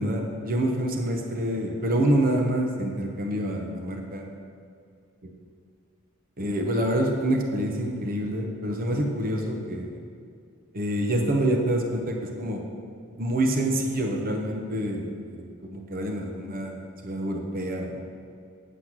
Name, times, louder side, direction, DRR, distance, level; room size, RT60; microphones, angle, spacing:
voice 1, 0.0-4.3 6.4-10.0 10.7-12.6 13.1-18.0, right 1 dB, 45° right, 2 dB, 0.9 m, -27 dB
8.2 x 7.7 x 6.0 m, 2.3 s
head